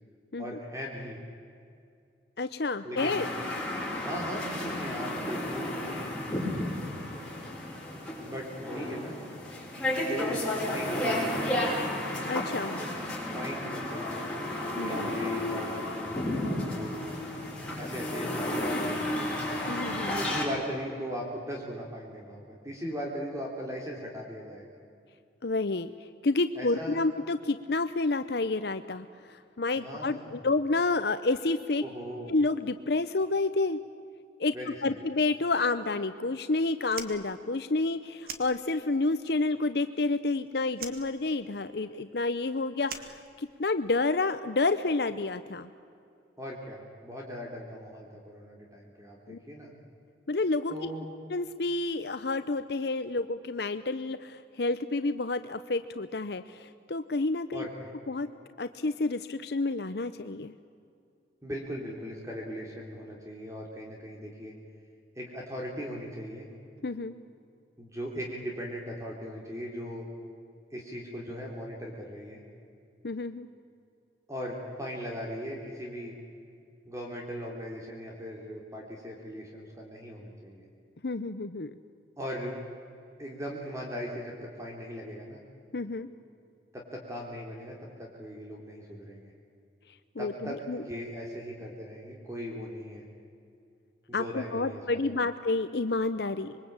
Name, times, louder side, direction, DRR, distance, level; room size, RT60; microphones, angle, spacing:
voice 1, 0.4-1.2 2.8-3.2 4.0-7.4 8.2-9.2 10.1-11.6 13.3-14.2 14.8-17.0 17.8-19.2 20.1-24.8 26.5-27.0 29.7-30.4 31.8-32.3 34.5-35.0 46.4-49.7 50.7-51.0 57.5-57.9 61.4-64.5 65.1-66.5 67.8-70.1 70.7-72.4 74.3-76.1 76.8-80.6 82.2-82.6 83.2-85.4 86.7-89.3 90.2-93.0 94.1-95.2, equal, 15° right, -1 dB, 3.2 m, -39 dB
voice 2, 2.4-3.3 12.3-12.8 14.8-15.1 19.7-20.3 25.4-25.9 26.2-31.8 32.3-33.8 34.4-34.5 34.8-45.7 49.3-49.4 50.3-50.7 51.3-57.7 58.1-58.3 58.6-60.5 66.8-67.1 73.0-73.5 81.0-81.7 85.7-86.1 90.2-90.8 94.1-96.5, left 3 dB, 65° left, 11 dB, 0.8 m, -29 dB
sound 1, 3.0-20.4, left 1 dB, 5° left, 6.8 m, -32 dB
Fire, 36.8-39.1 39.4-40.4 40.7-43.9, right 6 dB, 55° right, 2.2 m, -44 dB
26.0 x 22.5 x 8.8 m, 2.4 s
head